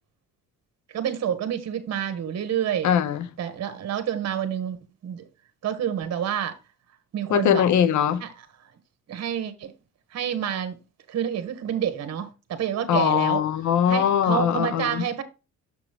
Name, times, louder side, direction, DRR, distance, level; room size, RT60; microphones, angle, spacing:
voice 1, 0.9-2.9 3.4-5.3 5.6-6.5 7.1-7.6 8.2-8.3 9.1-9.7 10.1-10.8 11.1-13.4 13.9-15.2, right 9 dB, 60° right, 1.3 m, -28 dB
voice 2, 2.8-3.3 7.3-8.2 12.9-15.1, left 9 dB, 70° left, 0.8 m, -21 dB
6.5 x 6.1 x 3.5 m
cardioid pair, 90°, 30 cm